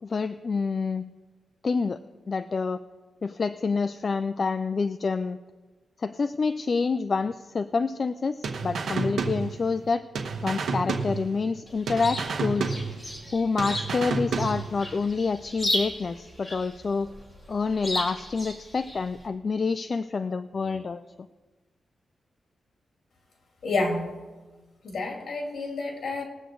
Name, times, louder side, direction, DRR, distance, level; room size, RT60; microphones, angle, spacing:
voice 1, 0.0-1.1 1.6-2.0 2.3-2.8 3.2-5.4 6.0-10.0 10.4-12.7 13.3-17.1 17.5-21.0, left 4 dB, 45° left, 11 dB, 0.4 m, -27 dB
sound 1, 8.4-9.9 10.1-11.6 11.9-13.3 13.6-14.9, right 4 dB, 80° right, 1.3 m, -30 dB
Chirp tweet, 11.7-19.3, left 1 dB, 20° left, 2.7 m, -35 dB
voice 2, 23.6-24.1 24.8-26.2, left 3 dB, 65° left, 1 dB, 2.8 m, -29 dB
20.0 x 8.1 x 3.9 m, 1.3 s
cardioid pair, 100°, 0 cm